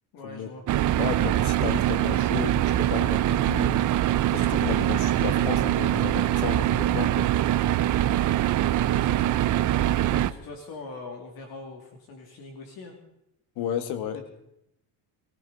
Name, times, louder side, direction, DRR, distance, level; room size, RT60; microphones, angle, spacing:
voice 1, 0.1-0.6 8.7-9.4 10.1-13.0 14.1-14.3, left 3 dB, 60° left, 2 dB, 2.6 m, -42 dB
sound 1, 0.7-10.3, right 12 dB, 50° right, 0.7 m, -23 dB
voice 2, 1.0-3.9 4.3-7.3 13.5-14.2, left 9 dB, 80° left, 10 dB, 1.8 m, -33 dB
22.5 x 15.0 x 4.1 m, 0.82 s
cardioid pair, 125°, 40 cm